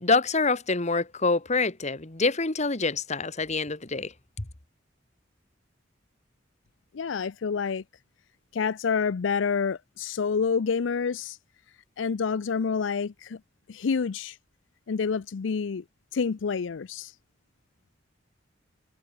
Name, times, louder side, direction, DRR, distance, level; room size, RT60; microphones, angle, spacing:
voice 1, 0.0-4.1 4.4-4.5, left 3 dB, 40° left, 1.7 m, -26 dB
voice 2, 6.9-7.8 8.5-11.4 12.0-13.4 13.7-14.4 14.9-15.8 16.1-17.1, left 5 dB, 80° left, 0.5 m, -28 dB
head